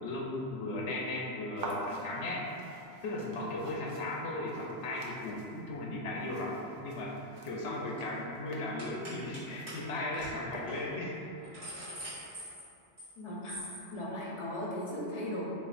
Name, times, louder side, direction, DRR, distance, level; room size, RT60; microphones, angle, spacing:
voice 1, 0.0-2.4 3.0-7.1 7.4-11.2, left 2 dB, 80° left, -2 dB, 0.9 m, -36 dB
sound 1, 1.6-11.1, right 2 dB, 55° right, 0.6 m, -46 dB
sound 2, 7.4-7.6 7.9-8.1 8.8-9.4 9.7-9.8 10.1-10.3 10.7-10.8 11.2-13.1 13.4-13.8, equal, 75° right, 1.8 m, -44 dB
voice 2, 13.2-13.5 13.9-15.4, left 1 dB, 30° left, -4 dB, 0.7 m, -37 dB
6.9 x 2.4 x 2.5 m, 2.9 s
omnidirectional pair, 1.1 m